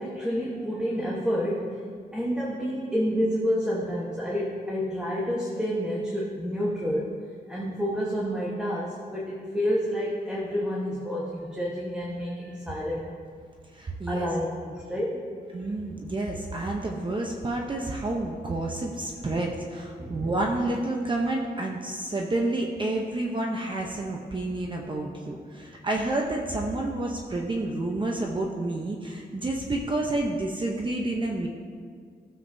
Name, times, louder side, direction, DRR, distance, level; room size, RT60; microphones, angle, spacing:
voice 1, 0.0-1.8 2.1-7.1 7.5-13.1 14.1-15.3 19.3-19.4 20.0-20.2, equal, 5° right, -5 dB, 1.2 m, -29 dB
voice 2, 13.7-14.3 15.5-31.5, right 2 dB, 30° right, 0 dB, 0.8 m, -29 dB
15.5 x 7.5 x 2.7 m, 2.1 s
wide cardioid pair, 125°, 17 cm